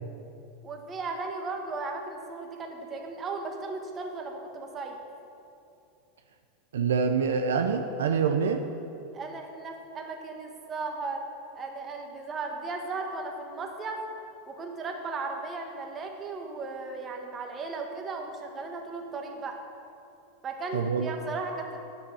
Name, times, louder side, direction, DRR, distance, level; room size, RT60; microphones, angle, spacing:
voice 1, 0.6-5.0 9.1-11.3 11.5-14.0 14.5-19.6 20.4-21.8, right 3 dB, 30° right, 3 dB, 1.5 m, -36 dB
voice 2, 6.7-8.6 20.7-21.1, right 6 dB, 80° right, 6 dB, 0.6 m, -25 dB
10.5 x 6.1 x 6.3 m, 2.7 s
hypercardioid pair, 95°, 0 cm